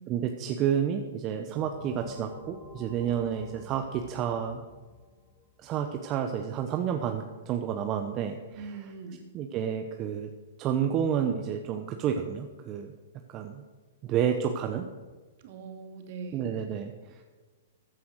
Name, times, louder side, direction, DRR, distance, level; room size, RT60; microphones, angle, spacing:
voice 1, 0.1-4.6 5.6-8.7 9.3-10.3 10.6-13.6 14.0-14.9 16.3-17.2, right 8 dB, 35° right, 5 dB, 1.0 m, -30 dB
sound 1, 1.6-6.0, left 4 dB, 35° left, 4.1 m, -48 dB
voice 2, 8.5-9.3 15.4-16.7, right 4 dB, 55° right, 5 dB, 2.4 m, -42 dB
15.0 x 9.5 x 6.5 m, 1.3 s
hypercardioid pair, 130°, 0 cm